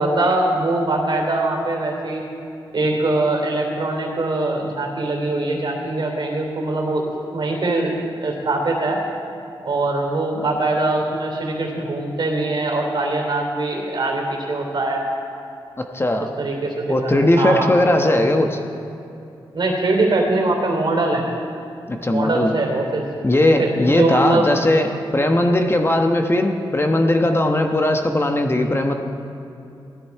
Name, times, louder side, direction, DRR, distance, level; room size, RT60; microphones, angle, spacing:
voice 1, 0.0-2.2 2.7-7.9 8.2-9.0 9.6-15.0 16.4-17.1 17.4-17.7 19.5-21.3 22.1-23.1 23.6-24.5, right 2 dB, 60° right, 1 dB, 3.2 m, -22 dB
voice 2, 15.9-16.3 16.9-18.6 21.9-22.5 23.2-28.9, left 1 dB, 25° left, 4 dB, 1.1 m, -18 dB
16.5 x 13.0 x 4.7 m, 2.7 s
cardioid pair, 75°, 9 cm